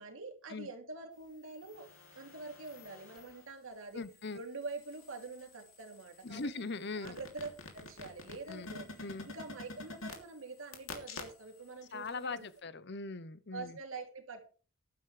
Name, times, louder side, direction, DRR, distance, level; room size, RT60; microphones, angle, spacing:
voice 1, 0.0-1.9 2.1-4.0 4.3-6.5 7.0-8.9 9.2-12.5 13.5-14.4, right 3 dB, 80° right, 2.9 m, -45 dB
sound 1, 1.5-3.5 3.9-11.7 12.1-12.2, left 3 dB, 85° left, 2.9 m, -49 dB
voice 2, 3.9-4.4 6.2-7.2 8.5-8.7 9.0-9.3 11.9-13.8, left 3 dB, 55° left, 0.8 m, -40 dB
14.5 x 11.5 x 3.3 m
head